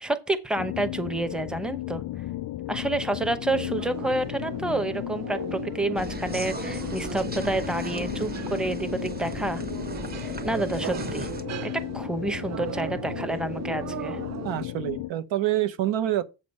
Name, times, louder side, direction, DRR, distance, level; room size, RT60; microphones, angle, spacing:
voice 1, 0.0-2.0 2.7-9.6 10.2-11.3 11.6-14.2, right 2 dB, ahead, 0.8 m, -29 dB
sound 1, 0.6-15.1, left 15 dB, 50° left, 0.4 m, -35 dB
sound 2, 3.5-14.7, right 10 dB, 40° right, 0.4 m, -38 dB
sound 3, 6.0-11.4, right 3 dB, 20° right, 1.0 m, -38 dB
voice 2, 14.4-16.2, right 13 dB, 85° right, 0.9 m, -26 dB
7.6 x 5.2 x 5.3 m
cardioid pair, 110°, 44 cm